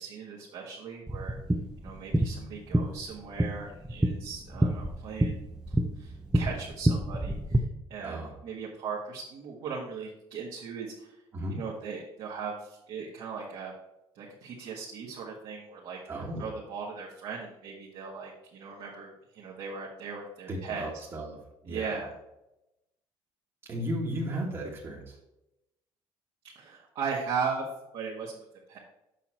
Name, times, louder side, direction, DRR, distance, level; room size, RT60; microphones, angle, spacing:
voice 1, 0.0-1.3 1.8-5.4 5.7-7.6 7.9-11.2 11.5-13.7 14.1-16.0 16.4-19.1 19.3-21.0 21.7-22.1 26.5-27.6 27.9-28.8, right 5 dB, 65° right, -4 dB, 1.6 m, -38 dB
sound 1, 1.1-7.6, right 1 dB, 5° right, 0.6 m, -28 dB
voice 2, 8.0-8.3 11.3-11.6 16.1-16.4 20.5-21.4 21.6-22.0 23.7-25.2, right 1 dB, 30° right, -4 dB, 1.6 m, -35 dB
7.0 x 5.8 x 4.4 m, 0.91 s
cardioid pair, 130°, 10 cm